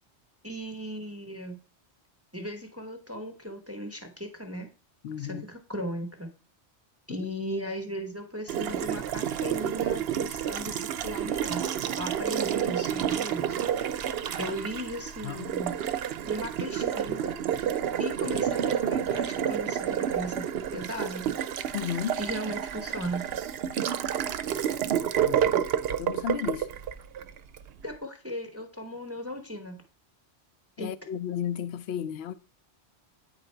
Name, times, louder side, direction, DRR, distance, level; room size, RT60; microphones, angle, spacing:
voice 1, 0.4-1.6 2.3-4.7 5.2-6.3 7.1-11.7 12.0-13.7 14.3-15.9 16.2-17.4 18.0-21.3 22.2-23.3 27.8-29.8 30.8-30.9, equal, 15° right, 0.8 m, -37 dB
voice 2, 5.0-5.4 15.2-15.5 21.7-22.2 25.2-25.6 26.0-26.7 30.8-32.3, left 9 dB, 70° left, 0.8 m, -33 dB
Water tap faucet, 8.5-27.6, right 9 dB, 65° right, 0.8 m, -29 dB
9.1 x 3.8 x 4.4 m
omnidirectional pair, 1.2 m